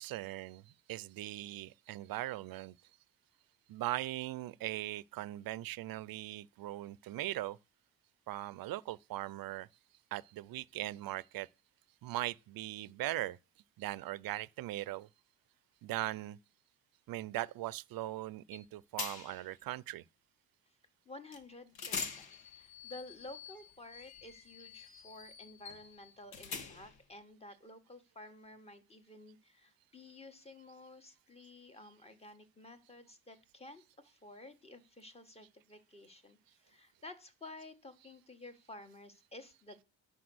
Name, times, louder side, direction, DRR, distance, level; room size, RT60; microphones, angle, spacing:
voice 1, 0.0-2.7 3.7-7.6 8.3-9.7 10.1-11.5 12.0-13.4 13.8-15.1 15.8-16.4 17.1-20.0, right 15 dB, 70° right, 0.6 m, -40 dB
sound 1, 18.5-18.6 19.0-19.5 21.3-21.4 21.8-27.0, left 5 dB, 80° left, 1.9 m, -45 dB
voice 2, 21.0-39.8, left 2 dB, 15° left, 1.4 m, -52 dB
9.7 x 6.1 x 7.8 m
cardioid pair, 155°, 37 cm